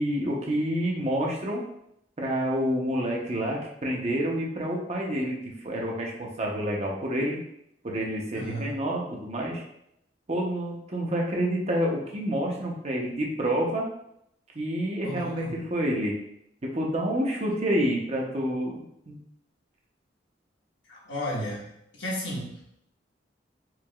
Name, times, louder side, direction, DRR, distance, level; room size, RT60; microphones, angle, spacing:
voice 1, 0.0-1.6 2.2-5.4 5.6-7.4 7.8-9.6 10.3-13.9 14.5-16.2 16.6-19.2, equal, 40° right, -1 dB, 0.7 m, -28 dB
voice 2, 8.3-8.7 15.0-15.6 20.9-21.7 22.0-22.6, equal, 85° left, -5 dB, 1.3 m, -33 dB
4.6 x 2.8 x 2.3 m, 0.77 s
head